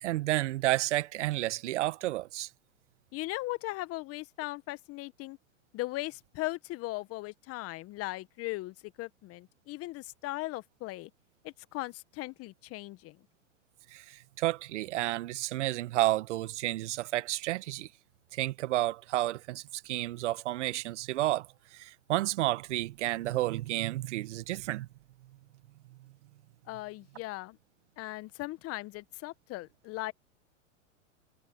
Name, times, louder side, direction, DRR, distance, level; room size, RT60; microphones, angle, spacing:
voice 1, 0.0-2.5 13.9-17.9 18.3-24.9, right 16 dB, 60° right, 1.6 m, -31 dB
voice 2, 3.1-5.4 5.7-11.1 11.4-13.2 26.7-27.6 28.0-30.1, left 19 dB, 35° left, 1.5 m, -38 dB
hypercardioid pair, 110°, 39 cm